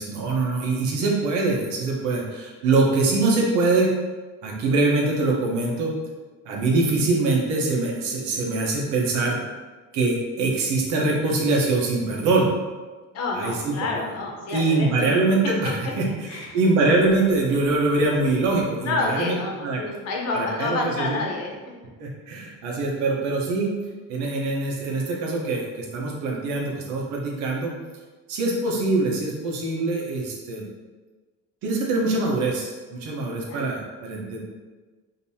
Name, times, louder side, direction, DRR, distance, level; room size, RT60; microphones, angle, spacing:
voice 1, 0.0-3.9 4.4-5.9 6.4-9.4 9.9-12.5 13.3-13.7 14.5-19.4 19.6-19.8 20.3-21.2 22.0-23.7 24.1-27.7 28.3-30.7 31.6-34.4, right 3 dB, 85° right, -2 dB, 1.1 m, -23 dB
voice 2, 13.1-15.1 16.3-16.6 18.8-21.5 33.5-33.6, left 3 dB, 60° left, -1 dB, 1.0 m, -28 dB
5.3 x 2.9 x 2.8 m, 1.3 s
cardioid pair, 135°, 29 cm